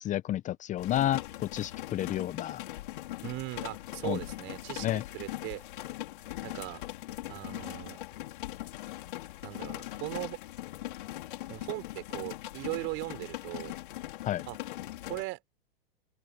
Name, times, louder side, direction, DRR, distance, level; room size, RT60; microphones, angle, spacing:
voice 1, 0.0-2.6 4.0-4.2 4.8-5.0 14.2-14.4, left 12 dB, 25° left, 1.0 m, -31 dB
sound 1, 0.8-15.2, left 15 dB, 60° left, 4.7 m, -41 dB
voice 2, 3.2-5.6 6.4-6.8 7.3-8.0 9.4-10.4 11.5-13.7 14.5-14.6 15.1-15.4, right 23 dB, 40° right, 5.8 m, -38 dB
open air
figure-of-eight pair, 105°, 29 cm